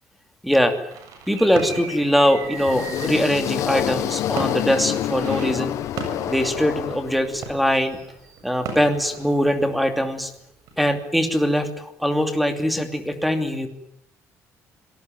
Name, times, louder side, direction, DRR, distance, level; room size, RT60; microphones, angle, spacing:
voice 1, 0.4-0.8 1.3-5.7 6.3-8.0 8.4-10.3 10.8-13.7, equal, ahead, 7 dB, 2.7 m, -22 dB
sound 1, 0.9-10.3 10.7-10.9, right 4 dB, 80° right, 7.3 m, -37 dB
sound 2, 2.4-7.6, left 12 dB, 65° left, 1.0 m, -27 dB
26.5 x 19.0 x 9.2 m, 0.79 s
cardioid pair, 165°, 6 cm